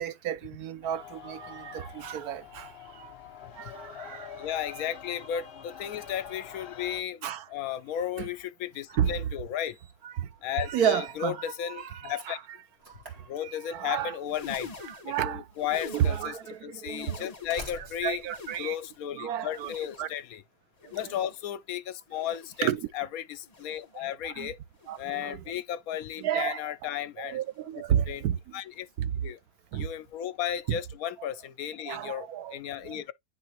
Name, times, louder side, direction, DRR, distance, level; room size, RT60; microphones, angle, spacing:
voice 1, 0.0-3.1 3.6-4.3 7.2-7.4 8.2-8.3 8.9-9.1 10.2-10.3 10.7-11.4 11.8-11.9 12.3-12.4 13.4-14.1 14.9-15.4 15.8-17.3 18.0-18.8 19.1-19.7 20.0-20.1 22.6-22.9 24.0-24.5 24.9-25.4 26.2-26.6 27.2-28.4 29.0-29.1 29.7-29.9 30.7-30.8 31.9-33.0, right 10 dB, 75° right, 1.1 m, -31 dB
sound 1, 0.8-7.0, left 8 dB, 45° left, 1.0 m, -46 dB
voice 2, 4.4-9.8 10.4-12.4 13.3-14.7 15.1-18.2 18.6-20.4 20.9-24.6 25.0-27.4 28.1-28.2 28.5-28.9 29.2-29.4 29.7-33.1, left 10 dB, 70° left, 1.0 m, -34 dB
Slam, 8.9-9.0 9.6-10.1 10.4-10.7 11.0-14.0 15.1-15.2 16.1-16.2 17.1-19.5, equal, 40° right, 2.3 m, -48 dB
sound 2, 14.1-16.5 16.8-17.8 18.1-19.1 19.5-20.3 20.8-21.5 22.1-22.8 23.4-24.0 24.7-25.3 26.1-26.5 27.4-27.7 28.7-28.9 30.1-30.2, left 4 dB, 25° left, 1.2 m, -47 dB
9.9 x 3.3 x 2.9 m
omnidirectional pair, 1.6 m